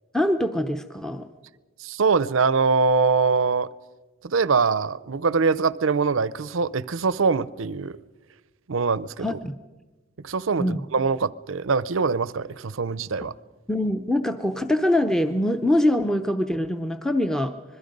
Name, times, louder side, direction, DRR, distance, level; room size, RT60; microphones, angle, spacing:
voice 1, 0.1-1.3 9.2-9.6 10.6-10.8 13.7-17.5, left 1 dB, 5° left, 0.6 m, -23 dB
voice 2, 1.8-3.7 4.2-8.0 8.7-9.4 10.2-13.3, right 4 dB, 65° right, 0.6 m, -23 dB
26.0 x 21.5 x 5.4 m
head